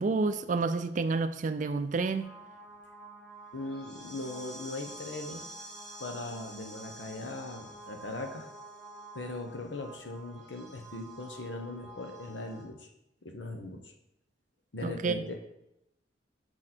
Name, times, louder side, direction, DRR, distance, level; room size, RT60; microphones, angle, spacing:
voice 1, 0.0-2.3 14.8-15.2, right 3 dB, 45° right, 11 dB, 0.4 m, -29 dB
sound 1, 2.2-12.6, right 2 dB, 5° left, 1.5 m, -48 dB
voice 2, 3.5-5.5 6.0-8.5 9.1-12.9 13.2-13.9 14.7-15.4, left 2 dB, 80° left, 4 dB, 1.0 m, -39 dB
6.4 x 6.3 x 4.3 m, 0.85 s
head